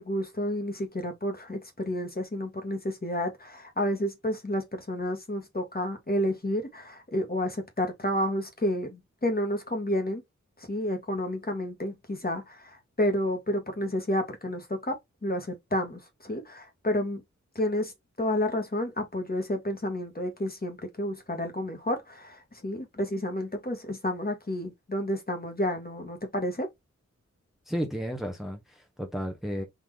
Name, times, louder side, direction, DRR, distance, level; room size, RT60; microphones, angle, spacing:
voice 1, 0.0-10.2 10.7-14.9 15.2-17.2 17.5-17.9 18.2-26.7, left 1 dB, 30° left, 1.3 m, -30 dB
voice 2, 27.7-29.6, equal, ahead, 0.9 m, -33 dB
3.8 x 2.8 x 3.2 m
wide cardioid pair, 70°, 30 cm